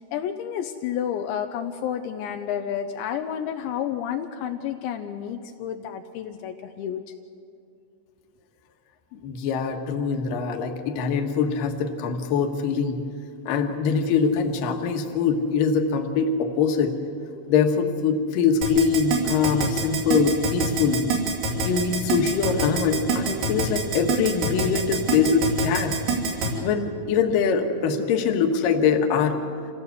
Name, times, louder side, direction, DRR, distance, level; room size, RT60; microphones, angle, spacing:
voice 1, 0.1-7.0, left 9 dB, 80° left, 6 dB, 2.8 m, -30 dB
voice 2, 9.1-13.0 13.5-17.0 17.5-21.1 21.6-26.0 26.6-29.4, left 5 dB, 65° left, 4 dB, 2.5 m, -23 dB
Keyboard (musical), 18.6-26.5, right 3 dB, 75° right, 5.4 m, -25 dB
26.5 x 16.5 x 8.1 m, 2.5 s
omnidirectional pair, 5.4 m